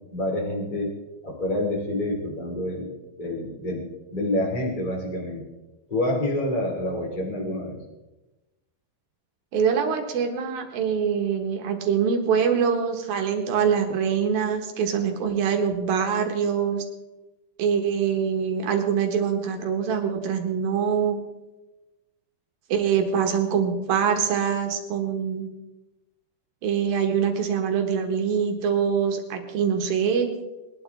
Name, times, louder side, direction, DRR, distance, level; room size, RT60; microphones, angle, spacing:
voice 1, 0.1-0.9 1.2-2.9 3.2-3.8 4.1-5.4 5.9-7.8, left 1 dB, 20° left, -1 dB, 1.1 m, -27 dB
voice 2, 9.5-16.8 17.6-21.2 22.7-25.5 26.6-30.3, right 7 dB, 65° right, 4 dB, 2.8 m, -24 dB
21.5 x 12.0 x 3.5 m, 1.0 s
omnidirectional pair, 5.4 m